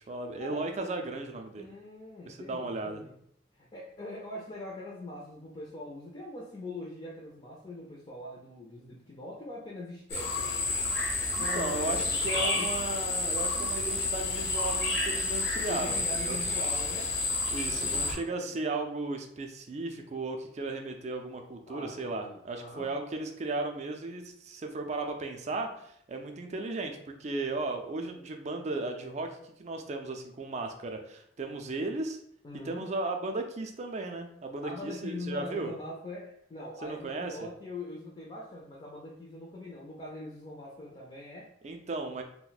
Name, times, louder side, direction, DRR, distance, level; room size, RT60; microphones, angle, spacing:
voice 1, 0.1-1.7 2.2-3.0 11.4-16.4 17.5-32.2 32.5-35.7 36.8-37.4 41.6-42.2, right 2 dB, 40° right, 4 dB, 0.4 m, -35 dB
voice 2, 1.6-3.2 3.5-10.8 11.4-12.1 12.3-12.7 15.7-17.2 17.8-18.6 21.7-23.0 32.4-32.8 34.6-41.5, left 1 dB, 30° left, -3 dB, 0.5 m, -42 dB
sound 1, 10.1-18.1, left 3 dB, 65° left, 0.8 m, -30 dB
2.5 x 2.1 x 3.9 m, 0.69 s
head